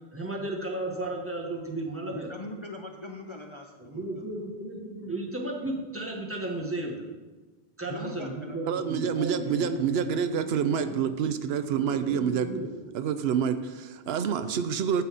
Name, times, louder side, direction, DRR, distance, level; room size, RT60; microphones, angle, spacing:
voice 1, 0.1-2.3 3.9-7.0 7.8-11.1 11.7-12.7, right 2 dB, 15° right, -1 dB, 1.3 m, -35 dB
voice 2, 2.1-4.3 7.9-8.7, left 2 dB, 35° left, 2 dB, 0.5 m, -41 dB
voice 3, 8.7-12.5 12.9-15.0, right 7 dB, 80° right, 11 dB, 0.8 m, -27 dB
9.5 x 4.1 x 7.4 m, 1.3 s
omnidirectional pair, 1.0 m